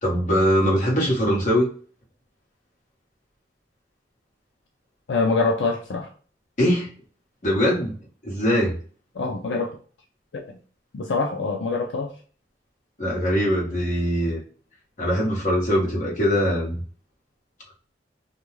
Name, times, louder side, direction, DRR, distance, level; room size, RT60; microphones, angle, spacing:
voice 1, 0.0-1.7 6.6-6.9 7.4-7.9 8.2-8.7 13.0-14.4 15.0-16.7, equal, 45° left, -3 dB, 1.1 m, -22 dB
voice 2, 5.1-6.1 9.1-9.8 10.5-10.6 10.9-12.1, left 3 dB, 80° left, 1 dB, 0.5 m, -24 dB
2.4 x 2.2 x 3.1 m, 0.41 s
head